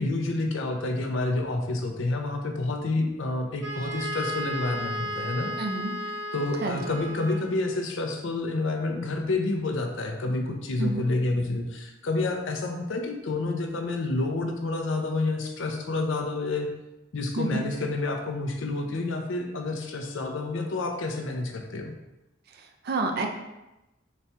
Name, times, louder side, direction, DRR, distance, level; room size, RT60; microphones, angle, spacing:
voice 1, 0.0-5.5 6.3-16.7 17.1-21.9, left 2 dB, 70° left, 4 dB, 0.5 m, -29 dB
Wind instrument woodwind instrument, 3.6-7.6, equal, 70° right, 1.3 m, -34 dB
voice 2, 5.6-5.9 6.6-6.8 10.8-11.0 17.4-17.6 22.6-23.3, right 3 dB, 50° right, 3 dB, 0.4 m, -29 dB
4.0 x 2.2 x 4.2 m, 0.97 s
head